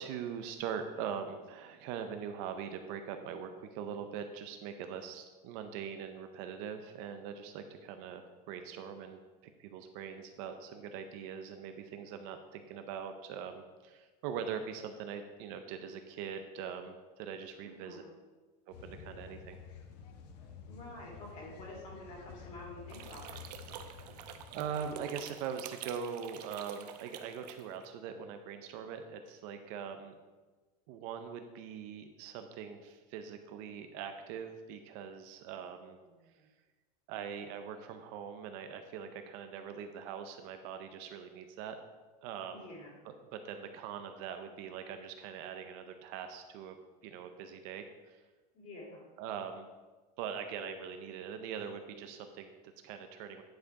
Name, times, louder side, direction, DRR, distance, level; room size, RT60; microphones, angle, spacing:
voice 1, 0.0-9.2 9.6-18.0 18.7-19.6 24.0-24.2 24.5-30.1 30.9-36.0 37.1-41.8 42.2-42.7 43.0-46.8 47.0-48.2 49.2-49.7 50.2-53.4, right 7 dB, 45° right, 7 dB, 0.6 m, -42 dB
voice 2, 17.6-18.1 20.7-23.6 36.2-36.5 42.5-43.1 48.5-49.1, left 2 dB, 35° left, -2 dB, 2.5 m, -49 dB
sound 1, 18.7-25.5 28.1-28.2, left 6 dB, 90° left, 1.1 m, -51 dB
sound 2, 22.9-27.9, right 9 dB, 85° right, 0.8 m, -47 dB
10.0 x 4.8 x 4.7 m, 1.3 s
supercardioid pair, 170°, 20 cm